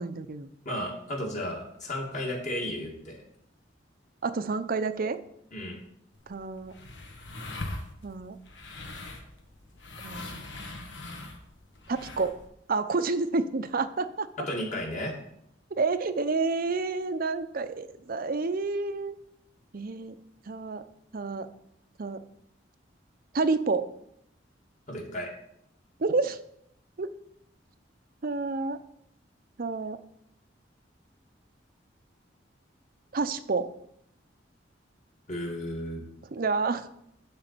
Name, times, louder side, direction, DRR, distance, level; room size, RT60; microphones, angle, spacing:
voice 1, 0.0-0.5 4.2-5.2 6.3-6.7 8.0-8.4 10.0-10.4 11.9-12.4 12.7-14.3 15.8-19.2 19.7-20.1 20.5-20.8 21.1-21.5 22.0-22.2 23.3-23.9 26.0-26.4 27.0-27.1 28.2-28.8 29.6-30.0 33.1-33.7 36.3-36.9, right 3 dB, 50° right, 11 dB, 0.6 m, -29 dB
voice 2, 0.7-3.2 5.5-5.8 14.5-15.1 24.9-25.3 35.3-36.0, left 1 dB, 40° left, -1 dB, 2.3 m, -33 dB
sound 1, 6.1-12.5, left 2 dB, 75° left, 1.4 m, -42 dB
11.0 x 4.0 x 6.8 m, 0.75 s
head